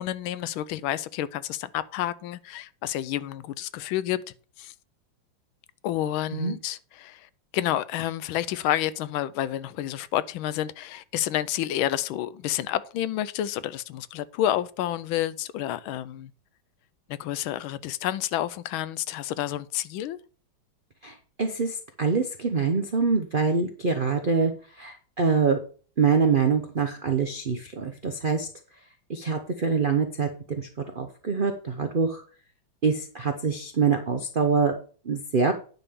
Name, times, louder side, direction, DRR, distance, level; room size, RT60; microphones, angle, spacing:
voice 1, 0.0-4.2 4.6-4.7 5.8-16.3 17.1-20.2, left 12 dB, 85° left, 1.4 m, -29 dB
voice 2, 21.0-24.5 24.8-25.6 26.0-28.5 29.1-30.7 31.0-32.2 32.8-34.7 35.1-35.5, right 5 dB, 85° right, 0.4 m, -25 dB
9.7 x 3.6 x 6.9 m
omnidirectional pair, 2.2 m